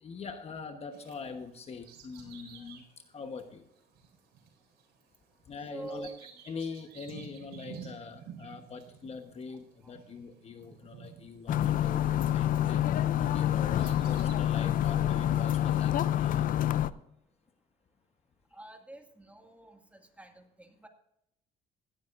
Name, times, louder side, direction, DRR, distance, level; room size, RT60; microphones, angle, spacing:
voice 1, 0.0-2.8 3.1-3.7 5.5-6.1 6.5-12.8 13.2-16.6, left 5 dB, 40° left, 7 dB, 1.1 m, -43 dB
Bird vocalization bird call bird song, 0.9-13.0 13.5-14.4, right 7 dB, 75° right, 4.1 m, -52 dB
voice 2, 5.7-6.2 9.8-9.9 18.5-20.9, right 2 dB, 10° right, 4 dB, 2.1 m, -46 dB
sound 1, 11.5-16.9, left 11 dB, 55° left, 0.6 m, -27 dB
16.5 x 12.5 x 2.6 m, 0.79 s
cardioid pair, 110°, 17 cm